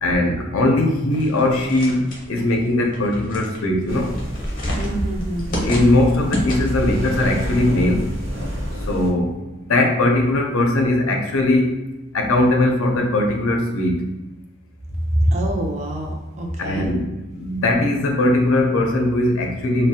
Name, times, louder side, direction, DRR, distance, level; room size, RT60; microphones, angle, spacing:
voice 1, 0.0-4.1 5.6-8.2 8.9-9.4 9.6-11.7 12.1-14.2 16.6-19.9, left 1 dB, 80° left, 2 dB, 0.5 m, -19 dB
sound 1, 1.1-6.9, left 1 dB, 40° left, 0.6 m, -31 dB
sound 2, 3.9-9.1, equal, 60° right, 0.7 m, -28 dB
voice 2, 4.8-5.7 15.1-16.9, right 1 dB, 35° right, 0 dB, 0.4 m, -24 dB
2.4 x 2.0 x 2.7 m, 1.1 s
head